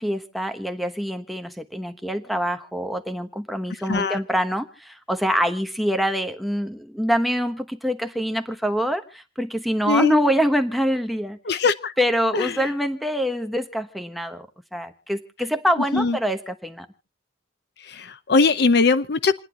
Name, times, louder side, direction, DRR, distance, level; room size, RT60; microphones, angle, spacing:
voice 1, 0.0-11.6 12.0-14.5 14.7-16.9, equal, ahead, 6 dB, 1.1 m, -25 dB
voice 2, 3.9-4.2 9.9-10.2 11.5-11.9 12.3-12.5 15.9-16.2 17.9-19.4, left 4 dB, 65° left, 13 dB, 0.7 m, -20 dB
28.5 x 9.9 x 2.9 m, 0.30 s
head